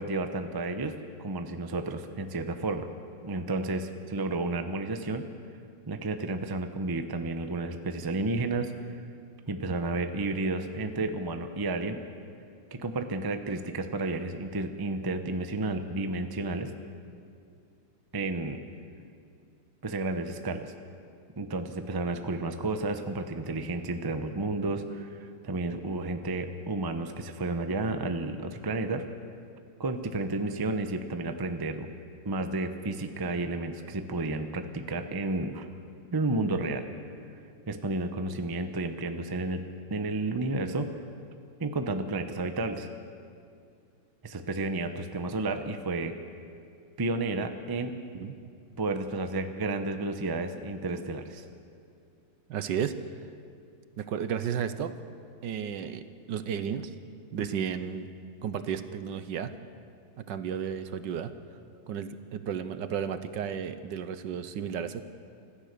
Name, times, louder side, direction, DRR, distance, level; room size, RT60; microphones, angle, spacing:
voice 1, 0.0-2.9 3.2-5.3 5.9-8.7 9.5-12.0 12.7-16.7 18.1-18.6 19.8-20.7 21.4-29.0 29.8-31.9 32.2-35.7 36.1-36.8 37.7-39.6 39.9-40.9 41.6-42.9 44.2-46.1 47.0-47.9 48.8-51.4, right 2 dB, 20° right, 7 dB, 0.6 m, -31 dB
voice 2, 52.5-53.0 54.0-55.0 55.4-56.9 57.3-58.1 58.4-59.5 60.2-61.3 61.9-65.0, right 8 dB, 70° right, 11 dB, 1.5 m, -33 dB
26.0 x 14.5 x 6.8 m, 2.4 s
omnidirectional pair, 2.1 m